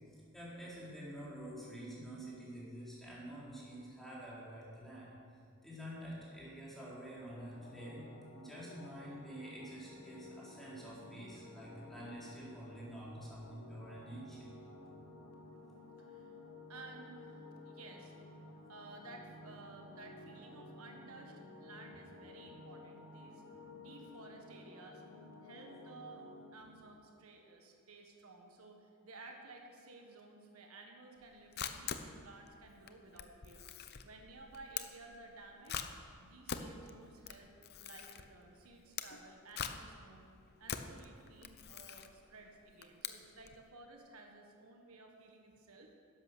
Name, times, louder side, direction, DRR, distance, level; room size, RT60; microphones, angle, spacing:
voice 1, 0.3-5.1 5.6-8.0 8.3-14.5 26.6-26.7, right 1 dB, ahead, -8 dB, 4.1 m, -48 dB
sound 1, 7.1-26.5, left 2 dB, 70° left, 1.7 m, -54 dB
voice 2, 16.0-16.3 16.7-18.1 18.7-23.4 23.8-25.0 25.4-26.3 26.5-35.8 36.2-37.5 37.8-40.3 40.6-45.9, right 2 dB, 80° right, 2 dB, 1.6 m, -55 dB
Camera, 31.2-43.6, left 8 dB, 50° left, 0.7 m, -45 dB
12.0 x 10.5 x 6.8 m, 2.3 s
head